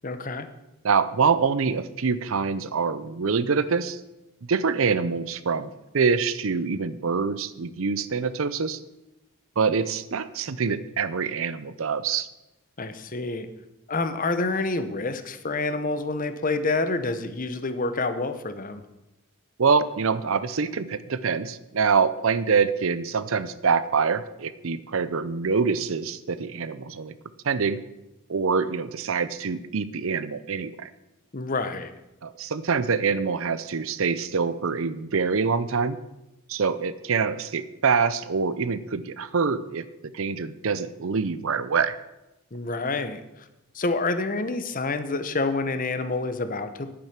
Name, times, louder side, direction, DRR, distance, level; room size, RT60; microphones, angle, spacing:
voice 1, 0.0-0.5 12.8-13.5 13.9-18.8 31.3-31.9 42.5-43.5 43.7-46.9, left 3 dB, 40° left, 10 dB, 0.9 m, -28 dB
voice 2, 0.8-4.0 4.5-8.8 9.6-12.3 19.6-27.1 27.4-27.8 28.3-30.9 32.2-36.0 36.5-39.8 40.1-42.0, right 5 dB, 65° right, 14 dB, 0.6 m, -25 dB
10.5 x 8.7 x 5.9 m, 0.95 s
head